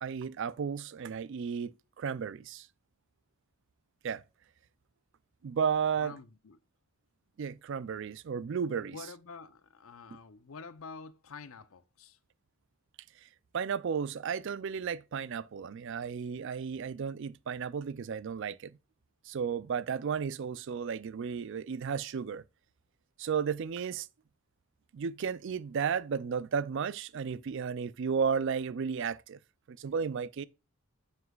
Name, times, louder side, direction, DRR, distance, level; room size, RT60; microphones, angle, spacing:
voice 1, 0.0-2.7 4.0-4.2 5.4-6.2 7.4-9.0 13.2-13.3 13.5-18.8 19.2-22.4 23.2-24.1 24.9-29.4 29.7-30.5, right 6 dB, 55° right, 0.3 m, -33 dB
voice 2, 6.0-6.6 8.8-12.2, left 4 dB, 65° left, 0.6 m, -48 dB
7.2 x 6.3 x 2.3 m
head